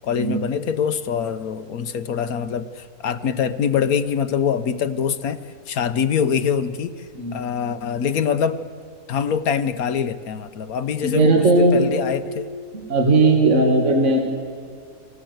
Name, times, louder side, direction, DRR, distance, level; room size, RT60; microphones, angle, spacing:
voice 1, 0.0-5.4 5.7-6.9 7.3-8.6 9.1-12.5, left 7 dB, 65° left, 11 dB, 1.2 m, -24 dB
voice 2, 11.0-11.8 12.7-14.2, right 2 dB, 45° right, 1 dB, 2.2 m, -17 dB
25.0 x 18.0 x 7.9 m, 2.3 s
omnidirectional pair, 1.7 m